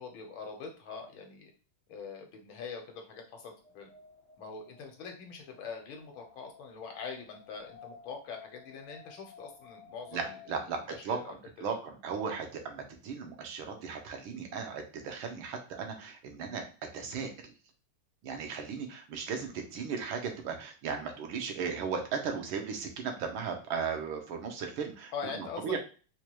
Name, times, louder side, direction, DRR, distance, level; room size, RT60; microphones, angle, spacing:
voice 1, 0.0-1.5 1.9-3.9 4.4-11.7 25.1-25.8, left 5 dB, 75° left, 3 dB, 1.6 m, -43 dB
Wind, 3.0-10.8, left 6 dB, 60° left, 0.3 m, -55 dB
voice 2, 10.1-16.6 16.9-17.5 18.2-25.8, right 6 dB, 80° right, 4 dB, 1.6 m, -36 dB
4.6 x 2.2 x 2.9 m, 0.36 s
omnidirectional pair, 2.3 m